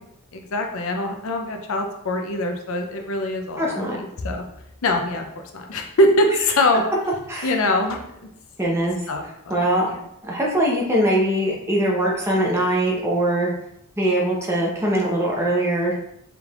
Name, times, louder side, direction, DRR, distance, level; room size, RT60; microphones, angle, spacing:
voice 1, 0.3-4.4 4.8-6.8 7.4-8.0 9.1-10.0, left 1 dB, 65° left, 4 dB, 0.5 m, -23 dB
voice 2, 3.6-4.0 7.3-7.5 8.6-9.0 9.5-9.9 10.2-13.5 14.0-15.9, right 1 dB, 10° right, -3 dB, 0.7 m, -21 dB
4.7 x 3.5 x 2.4 m, 0.76 s
head